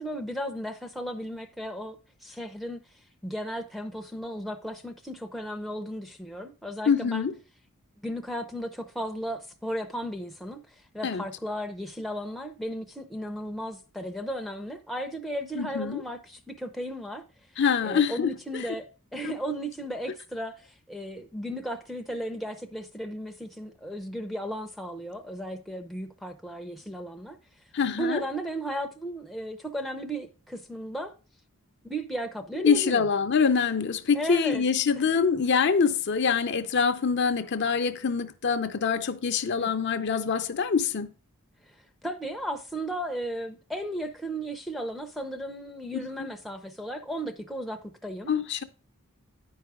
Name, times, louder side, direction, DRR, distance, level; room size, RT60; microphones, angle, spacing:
voice 1, 0.0-2.8 3.2-7.3 8.0-10.6 10.9-17.2 17.8-27.4 27.9-31.1 31.8-33.0 34.1-34.6 34.9-35.1 39.6-39.7 42.0-48.3, equal, ahead, 0.5 m, -35 dB
voice 2, 6.9-7.3 11.0-11.2 15.6-16.0 17.6-18.3 19.2-19.3 27.7-28.2 32.6-41.1 45.9-46.0 48.3-48.6, left 6 dB, 50° left, 0.5 m, -25 dB
9.9 x 4.8 x 4.8 m
head